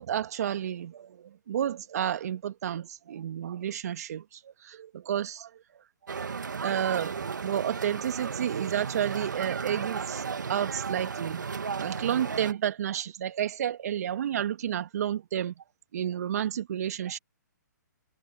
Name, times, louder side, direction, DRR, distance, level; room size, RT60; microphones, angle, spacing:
voice 1, 0.0-5.5 6.6-10.2 10.5-11.5 11.8-15.5 15.9-17.2, right 10 dB, 55° right, 2.0 m, -31 dB
sound 1, 6.1-12.5, right 5 dB, 75° right, 2.2 m, -34 dB
figure-of-eight pair, 130°, 10 cm